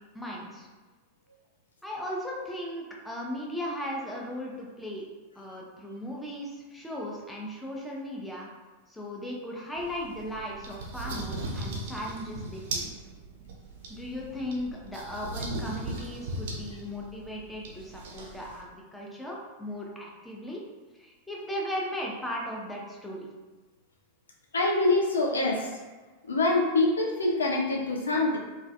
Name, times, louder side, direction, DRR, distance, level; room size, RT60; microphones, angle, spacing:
voice 1, 0.1-0.7 1.8-5.1 5.4-8.5 8.9-12.9 13.9-20.6 20.9-23.3, left 1 dB, 5° left, -3 dB, 0.5 m, -37 dB
sound 1, 9.8-18.6, right 2 dB, 50° right, 0.4 m, -38 dB
voice 2, 24.5-25.7 26.3-28.4, left 2 dB, 70° left, 0 dB, 0.3 m, -25 dB
2.4 x 2.3 x 2.4 m, 1.3 s
figure-of-eight pair, 90°, 0 cm